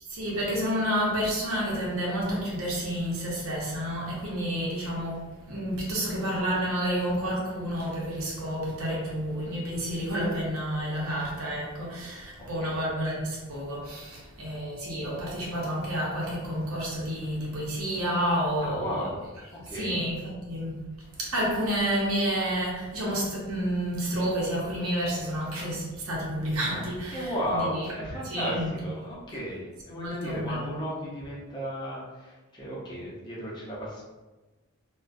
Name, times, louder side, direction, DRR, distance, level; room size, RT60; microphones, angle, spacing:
voice 1, 0.1-19.1 19.7-27.2 27.5-27.7 28.3-28.7 29.9-30.8, equal, 70° right, -4 dB, 0.8 m, -30 dB
voice 2, 18.6-19.2 19.5-20.0 27.1-34.0, equal, 20° left, -6 dB, 0.6 m, -34 dB
2.5 x 2.2 x 2.5 m, 1.2 s
head